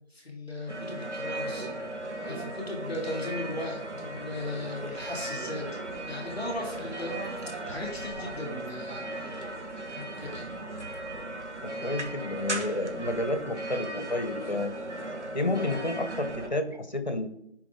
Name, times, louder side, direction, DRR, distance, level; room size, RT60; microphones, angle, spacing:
voice 1, 0.1-1.7 2.2-5.8 6.1-9.5 9.9-10.5, left 1 dB, ahead, -5 dB, 1.6 m, -37 dB
sound 1, 0.7-16.5, right 1 dB, 80° right, 1.7 m, -37 dB
voice 2, 11.6-14.7 15.3-17.3, left 2 dB, 40° left, 8 dB, 1.0 m, -30 dB
11.0 x 4.8 x 3.8 m, 0.78 s
figure-of-eight pair, 175°, 34 cm